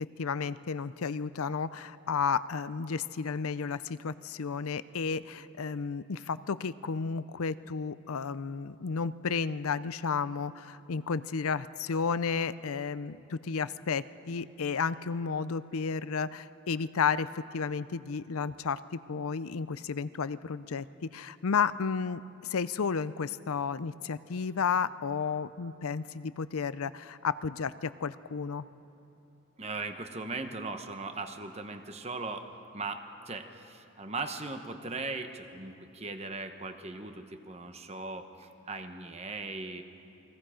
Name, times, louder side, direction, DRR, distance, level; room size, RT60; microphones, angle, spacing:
voice 1, 0.0-28.7, left 5 dB, 80° left, 15 dB, 0.6 m, -32 dB
voice 2, 29.6-32.5 32.7-39.8, right 3 dB, 30° right, 7 dB, 1.1 m, -39 dB
29.5 x 22.0 x 5.1 m, 2.8 s
head